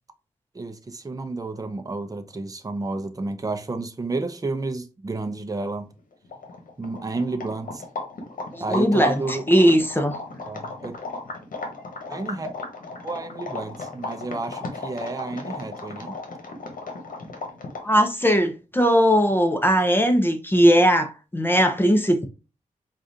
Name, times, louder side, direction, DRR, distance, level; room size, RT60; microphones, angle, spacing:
voice 1, 0.5-5.9 6.8-7.8 8.6-9.4 10.4-11.0 12.1-12.5 13.0-16.2, right 3 dB, 25° right, 0.6 m, -31 dB
sound 1, 6.0-6.1 6.2-18.0, left 3 dB, 85° left, 1.0 m, -35 dB
voice 2, 8.5-10.2 17.8-22.3, equal, 15° left, 0.7 m, -19 dB
4.7 x 2.5 x 2.7 m
cardioid pair, 70°, 14 cm